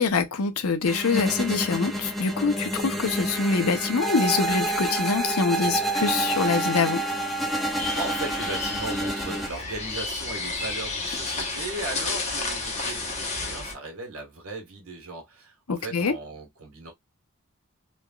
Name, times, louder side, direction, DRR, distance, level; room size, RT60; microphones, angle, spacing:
voice 1, 0.0-7.0 15.7-16.1, left 5 dB, 80° left, 0.6 m, -25 dB
sound 1, 0.8-9.5, right 1 dB, ahead, 0.4 m, -28 dB
voice 2, 7.5-16.9, right 2 dB, 75° right, 1.3 m, -37 dB
sound 2, 7.8-13.7, left 3 dB, 30° left, 0.9 m, -31 dB
3.3 x 2.3 x 2.3 m
head